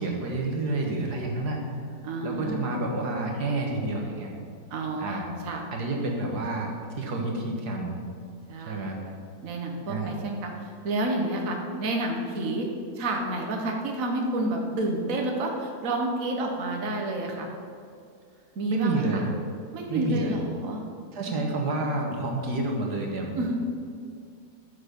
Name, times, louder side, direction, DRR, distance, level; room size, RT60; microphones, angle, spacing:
voice 1, 0.0-1.6 2.2-4.3 5.0-5.3 5.7-6.7 7.0-7.9 8.6-9.0 9.9-10.2 18.7-19.3 19.9-20.3 21.1-23.4, right 2 dB, 90° right, 0 dB, 2.1 m, -29 dB
voice 2, 2.0-2.8 4.7-5.6 8.5-8.9 9.4-12.7 13.0-17.5 18.5-19.2 19.7-20.8 21.3-21.4 23.3-23.6, right 2 dB, 60° right, 1 dB, 1.6 m, -30 dB
14.5 x 6.7 x 5.3 m, 2.3 s
omnidirectional pair, 1.7 m